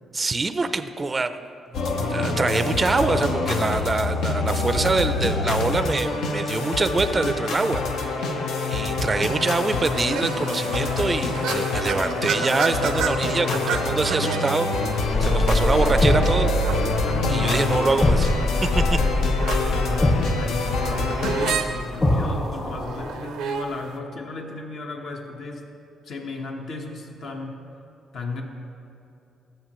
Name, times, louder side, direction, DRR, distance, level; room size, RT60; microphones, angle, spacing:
voice 1, 0.1-1.5 2.1-7.8 8.2-8.4 8.7-14.7 14.9-16.6 17.3-18.3 18.6-19.0, right 3 dB, 25° right, 11 dB, 0.4 m, -24 dB
sound 1, 1.7-21.5, left 3 dB, 80° left, 0.8 m, -26 dB
sound 2, 9.2-24.0, right 7 dB, 85° right, 0.5 m, -34 dB
sound 3, 15.1-23.1, left 1 dB, 30° left, 1.8 m, -23 dB
voice 2, 17.0-17.7 19.5-25.7 26.0-27.5 28.1-28.4, left 3 dB, 65° left, 2 dB, 1.1 m, -35 dB
14.0 x 6.7 x 3.0 m, 2.7 s
cardioid pair, 90°, 0 cm